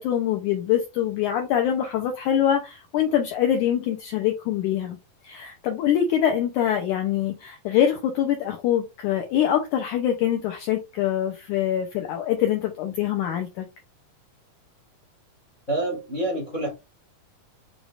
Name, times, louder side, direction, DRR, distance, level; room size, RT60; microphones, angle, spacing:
voice 1, 0.0-5.0 5.2-13.7, left 10 dB, 75° left, 1.8 m, -24 dB
voice 2, 15.7-16.7, right 1 dB, 35° left, 1.2 m, -27 dB
6.3 x 3.3 x 2.5 m
omnidirectional pair, 4.1 m